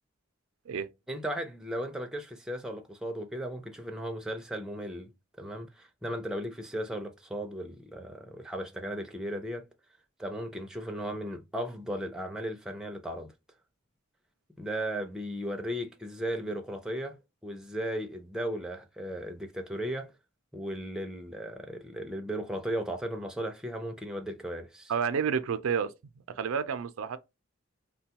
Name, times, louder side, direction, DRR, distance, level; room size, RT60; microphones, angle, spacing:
voice 1, 1.1-5.1 5.4-9.7 10.2-13.3 14.6-17.2 17.4-20.1 20.5-24.9, equal, 5° right, 0.4 m, -36 dB
voice 2, 24.9-25.9 26.3-27.2, right 6 dB, 85° right, 0.4 m, -30 dB
3.6 x 2.3 x 2.8 m
head